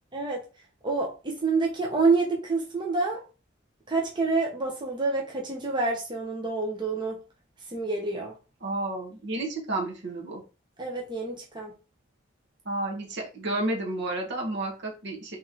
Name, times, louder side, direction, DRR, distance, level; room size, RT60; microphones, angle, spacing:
voice 1, 0.1-0.5 0.8-3.2 3.9-7.2 7.7-8.3 10.8-11.7, right 3 dB, 25° right, -1 dB, 0.7 m, -27 dB
voice 2, 8.6-10.4 12.6-15.4, right 2 dB, 60° right, 0 dB, 1.1 m, -31 dB
3.1 x 2.9 x 3.7 m, 0.32 s
head